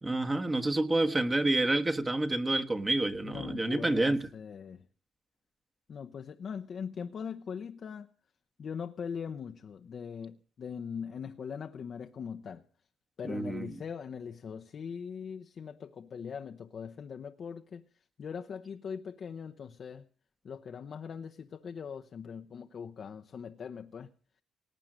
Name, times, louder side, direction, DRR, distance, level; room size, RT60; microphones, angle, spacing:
voice 1, 0.0-4.3 13.2-13.7, right 2 dB, 20° right, 1.3 m, -28 dB
voice 2, 3.2-4.8 5.9-8.1 8.6-12.6 13.2-20.1 20.4-24.1, left 6 dB, 55° left, 0.9 m, -41 dB
18.5 x 8.7 x 7.7 m
cardioid pair, 90°, 0 cm